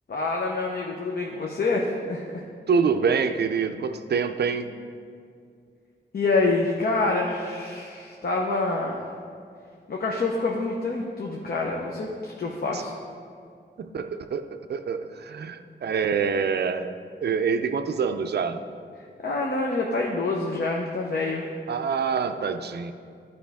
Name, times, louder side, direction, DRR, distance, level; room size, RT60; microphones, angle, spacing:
voice 1, 0.1-2.4 6.1-9.1 9.9-12.9 19.2-21.5, left 3 dB, 55° left, -1 dB, 0.7 m, -26 dB
voice 2, 2.7-4.8 12.7-12.8 13.8-16.9 17.2-18.6 21.7-22.9, right 6 dB, 65° right, 9 dB, 0.4 m, -26 dB
11.0 x 5.3 x 3.4 m, 2.3 s
wide cardioid pair, 120°, 19 cm